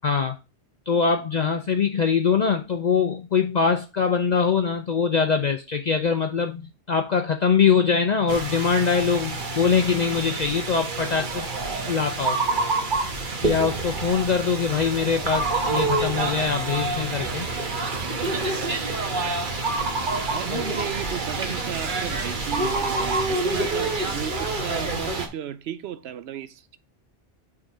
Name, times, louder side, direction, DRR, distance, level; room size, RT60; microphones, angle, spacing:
voice 1, 0.0-0.4 0.9-11.5 11.9-12.4 13.4-17.5 20.5-20.8, left 6 dB, 50° left, 0.7 m, -23 dB
sound 1, 8.3-25.3, right 3 dB, 55° right, 1.2 m, -27 dB
voice 2, 20.3-26.8, right 10 dB, 90° right, 0.9 m, -34 dB
6.4 x 3.7 x 4.7 m
omnidirectional pair, 1.0 m